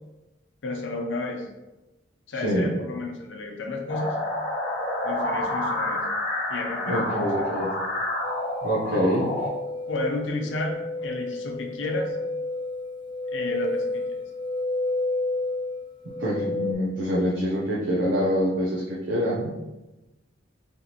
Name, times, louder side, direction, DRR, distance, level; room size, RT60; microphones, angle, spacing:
voice 1, 0.6-1.5 2.3-4.2 5.0-6.0 6.5-7.5 8.9-9.1 9.9-12.2 13.3-14.2, left 2 dB, 75° left, 2 dB, 0.7 m, -31 dB
sound 1, 3.9-9.5, left 1 dB, 45° left, 1.0 m, -29 dB
voice 2, 6.9-7.7 8.6-9.3 16.2-19.5, equal, 65° right, -6 dB, 0.8 m, -25 dB
sound 2, 8.2-16.7, left 2 dB, 25° left, 0.4 m, -31 dB
3.5 x 2.9 x 4.0 m, 1.0 s
head